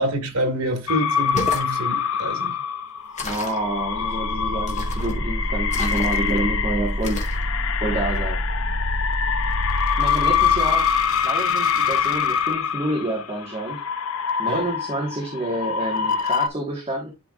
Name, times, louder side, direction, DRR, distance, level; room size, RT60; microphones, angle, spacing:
voice 1, 0.0-2.6 14.5-14.6, equal, 85° right, 2.0 m, -26 dB
sound 1, 0.9-16.5, left 7 dB, 70° left, 0.7 m, -25 dB
sound 2, 1.2-1.7 3.2-3.6 4.7-5.2 5.7-6.4 7.0-7.4, left 3 dB, 35° left, 1.6 m, -32 dB
voice 2, 3.2-7.2 7.8-8.4 9.9-10.8 11.2-13.8 14.4-17.1, right 1 dB, 25° right, 1.6 m, -28 dB
sound 3, 3.7-11.3, equal, 60° right, 1.5 m, -28 dB
11.5 x 4.6 x 2.5 m
head